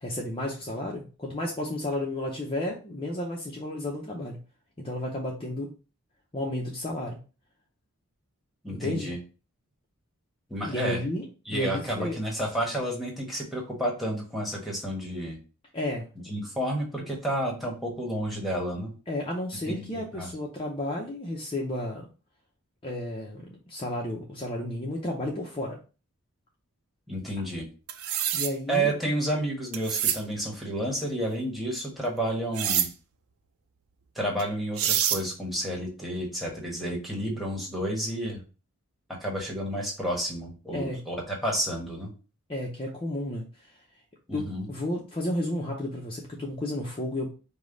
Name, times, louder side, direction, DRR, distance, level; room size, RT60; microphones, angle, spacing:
voice 1, 0.0-4.4 4.8-5.7 6.3-7.2 8.7-9.1 10.6-12.2 15.7-16.1 19.1-22.1 22.8-25.8 28.3-28.9 40.7-41.0 42.5-43.7 44.3-47.3, left 1 dB, 25° left, -2 dB, 0.6 m, -32 dB
voice 2, 8.6-9.2 10.5-11.0 11.5-15.4 16.3-18.9 19.7-20.3 27.1-27.7 28.7-32.9 34.1-38.4 39.2-42.1 44.3-44.7, right 1 dB, ahead, -1 dB, 1.2 m, -30 dB
sound 1, 27.9-28.5 29.7-30.2 32.5-32.9 34.4-34.5 34.8-35.2, right 10 dB, 85° right, 0.5 m, -26 dB
5.1 x 2.2 x 3.8 m, 0.34 s
head